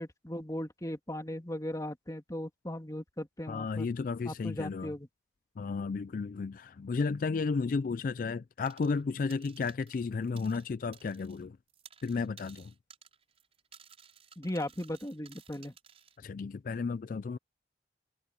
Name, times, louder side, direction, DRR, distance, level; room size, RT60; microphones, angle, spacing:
voice 1, 0.0-3.9 4.3-5.1 14.4-15.7, left 1 dB, 20° left, 2.5 m, -38 dB
voice 2, 3.5-4.9 5.6-11.6 12.0-12.7 16.2-17.4, left 4 dB, 50° left, 0.3 m, -33 dB
sound 1, 8.7-9.0 9.3-11.4 11.7-16.2, right 7 dB, 35° right, 6.0 m, -57 dB
head